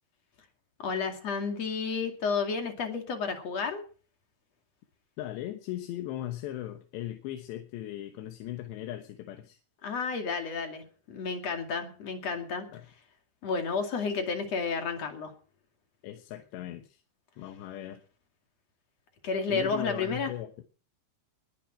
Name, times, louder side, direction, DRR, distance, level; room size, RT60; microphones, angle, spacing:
voice 1, 0.8-3.8 9.8-12.7 13.4-15.3 19.2-20.3, left 5 dB, 45° left, 5 dB, 2.8 m, -31 dB
voice 2, 5.2-9.6 12.7-12.9 16.0-17.0 17.4-18.0 19.5-20.6, left 13 dB, 75° left, 6 dB, 3.2 m, -38 dB
21.0 x 10.5 x 4.5 m, 0.40 s
omnidirectional pair, 5.3 m